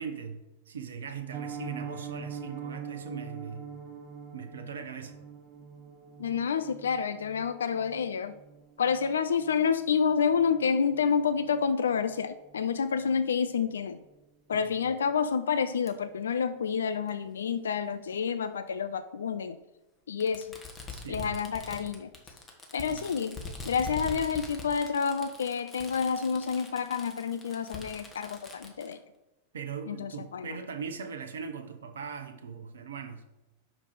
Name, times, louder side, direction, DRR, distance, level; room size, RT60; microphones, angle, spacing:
voice 1, 0.0-3.7 4.3-5.2 14.5-14.9 20.9-21.4 22.9-23.2 29.5-33.2, right 6 dB, 65° right, 8 dB, 0.6 m, -40 dB
Piano, 1.3-12.2 12.5-12.7 13.0-13.2 13.5-13.8 14.1-14.2, right 7 dB, 20° right, 0.6 m, -44 dB
voice 2, 6.2-8.4 8.8-14.0 14.5-19.6 20.1-20.5 21.1-22.1 22.7-23.4 23.6-29.0 29.9-30.6, left 6 dB, 65° left, 12 dB, 0.3 m, -29 dB
Fireworks, 15.9-16.0 17.1-17.2 18.4-18.5 20.2-28.9, left 4 dB, 15° left, 1.3 m, -43 dB
6.0 x 5.2 x 4.7 m, 1.0 s
figure-of-eight pair, 90°, 0 cm